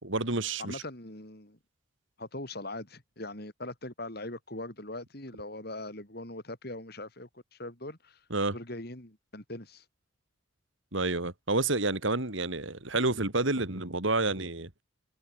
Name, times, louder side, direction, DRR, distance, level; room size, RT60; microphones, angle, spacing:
voice 1, 0.0-0.8 8.3-8.6 10.9-14.7, right 2 dB, 70° right, 2.9 m, -29 dB
voice 2, 0.6-1.6 2.2-8.2 8.5-9.8, left 2 dB, 50° left, 3.6 m, -41 dB
head